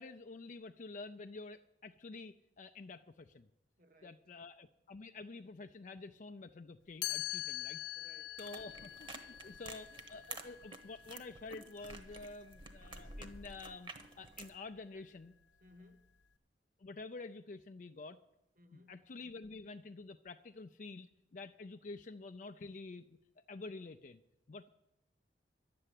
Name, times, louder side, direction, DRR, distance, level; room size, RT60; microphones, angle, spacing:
voice 1, 0.0-3.5 4.0-7.8 8.4-13.9 14.2-15.3 16.8-18.2 18.9-24.2 24.5-24.7, left 3 dB, 45° left, 0.4 m, -49 dB
voice 2, 3.8-4.3 7.9-8.6 9.4-9.6 15.6-16.1 18.6-18.9, left 1 dB, 50° right, 1.1 m, -63 dB
Chime, 7.0-12.9, left 15 dB, 80° left, 0.8 m, -44 dB
sound 1, 8.4-14.5, right 3 dB, 30° right, 1.1 m, -51 dB
11.5 x 7.7 x 9.9 m
head